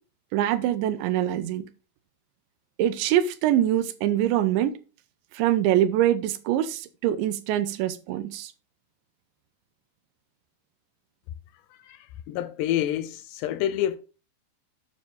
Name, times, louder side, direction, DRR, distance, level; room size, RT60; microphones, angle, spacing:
voice 1, 0.3-1.7 2.8-4.7 5.3-8.5, right 12 dB, 85° right, 2.9 m, -24 dB
voice 2, 11.8-14.0, left 12 dB, 85° left, 2.4 m, -28 dB
9.5 x 6.6 x 3.6 m
omnidirectional pair, 5.2 m